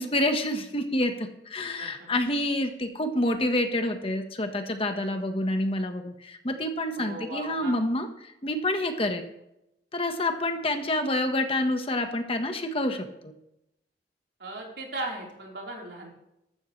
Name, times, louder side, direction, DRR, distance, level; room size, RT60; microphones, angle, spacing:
voice 1, 0.0-9.3 9.9-13.3, left 1 dB, 30° left, 6 dB, 1.3 m, -28 dB
voice 2, 7.0-7.8 14.4-16.1, right 2 dB, 70° right, -2 dB, 4.0 m, -37 dB
14.5 x 13.0 x 3.3 m, 0.83 s
head